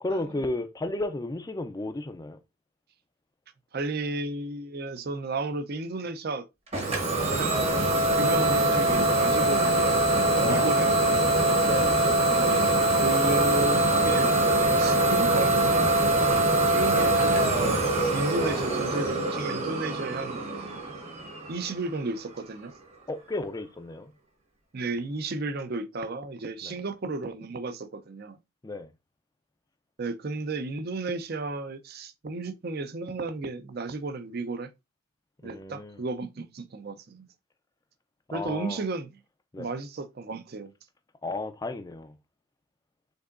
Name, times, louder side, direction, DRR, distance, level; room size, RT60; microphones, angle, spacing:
voice 1, 0.0-2.4 10.3-10.7 11.6-12.0 18.4-18.7 23.1-24.1 26.6-26.8 28.6-28.9 35.4-36.0 38.3-38.8 39.5-39.7 41.2-42.2, left 2 dB, 15° left, 0.4 m, -33 dB
voice 2, 3.7-6.5 7.3-7.7 8.2-10.0 10.4-11.2 12.4-14.3 14.8-15.9 16.6-20.7 21.5-22.7 24.7-28.4 30.0-34.7 35.4-37.3 38.3-39.1 39.6-40.7, right 3 dB, 45° right, 0.5 m, -33 dB
Idling / Domestic sounds home sounds, 6.7-22.3, right 2 dB, 30° right, 1.0 m, -23 dB
5.3 x 3.7 x 2.5 m
head